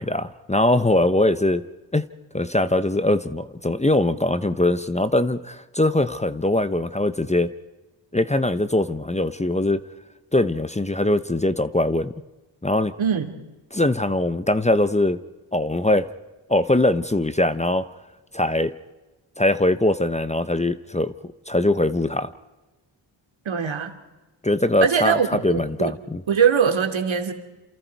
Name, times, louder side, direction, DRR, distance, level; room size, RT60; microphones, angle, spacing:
voice 1, 0.0-1.6 1.9-2.1 2.3-7.5 8.1-9.8 10.3-12.1 12.6-12.9 13.7-15.2 15.5-16.1 16.5-17.9 18.3-18.7 19.4-21.1 21.5-22.3 24.4-26.2, left 1 dB, 15° left, 12 dB, 0.9 m, -21 dB
voice 2, 13.0-13.4 23.4-24.0 24.8-26.0 26.3-27.3, right 7 dB, 75° right, 6 dB, 2.8 m, -22 dB
28.5 x 28.0 x 4.7 m, 1.1 s
cardioid pair, 85°, 47 cm